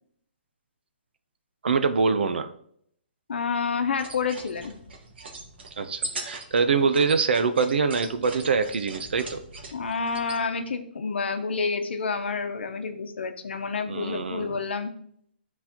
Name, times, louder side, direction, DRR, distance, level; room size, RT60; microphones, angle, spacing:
voice 1, 1.6-2.5 5.8-9.4 13.9-14.6, right 5 dB, 70° right, 10 dB, 0.7 m, -24 dB
voice 2, 3.3-4.7 9.7-14.9, left 5 dB, 85° left, 7 dB, 0.8 m, -29 dB
sound 1, 3.9-10.4, right 2 dB, 90° right, 1.5 m, -40 dB
12.0 x 4.1 x 2.9 m, 0.67 s
hypercardioid pair, 175°, 6 cm